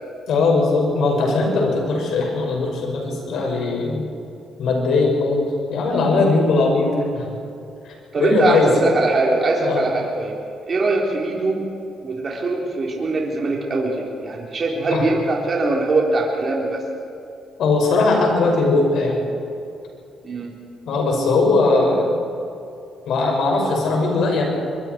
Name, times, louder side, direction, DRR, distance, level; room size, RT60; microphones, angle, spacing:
voice 1, 0.3-4.0 4.6-7.3 8.2-8.7 9.6-9.8 14.9-15.0 17.6-19.1 20.9-22.1 23.1-24.5, left 3 dB, 75° left, 0 dB, 6.2 m, -19 dB
voice 2, 8.1-10.3 10.7-11.7 12.0-16.8 20.2-20.5, right 2 dB, 40° right, -2 dB, 4.0 m, -22 dB
25.0 x 23.0 x 4.7 m, 2.6 s
cardioid pair, 90°, 0 cm